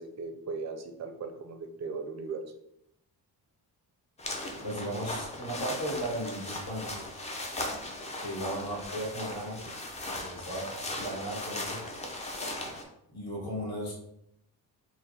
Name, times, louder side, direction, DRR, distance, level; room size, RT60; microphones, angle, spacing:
voice 1, 0.0-2.4, right 4 dB, 45° right, 5 dB, 0.4 m, -38 dB
sound 1, 4.2-12.8, left 1 dB, 20° left, 0.4 m, -38 dB
voice 2, 4.6-6.9 8.2-9.6 10.1-10.7 11.0-11.8 13.1-13.9, right 1 dB, 70° left, -4 dB, 1.4 m, -35 dB
4.7 x 2.0 x 3.1 m, 0.79 s
wide cardioid pair, 175°, 40 cm